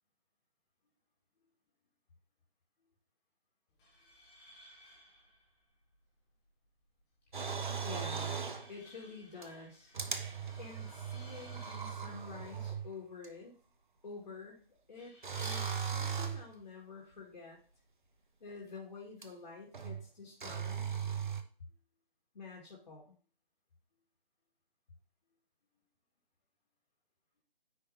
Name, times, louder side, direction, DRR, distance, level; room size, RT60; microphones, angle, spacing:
sound 1, 3.7-18.7, left 1 dB, 5° left, 0.6 m, -60 dB
sound 2, 7.3-8.7 9.4-9.5 9.9-12.9 13.2-13.3 15.2-16.5 19.2-19.3 19.7-20.1 20.4-21.4, right 7 dB, 55° right, 0.8 m, -38 dB
voice 1, 7.8-8.4 8.7-9.9 10.6-13.5 14.0-15.1 15.4-17.6 18.4-21.2 22.3-23.1, left 4 dB, 50° left, -3 dB, 1.9 m, -49 dB
9.5 x 3.4 x 4.3 m, 0.42 s
figure-of-eight pair, 145°, 29 cm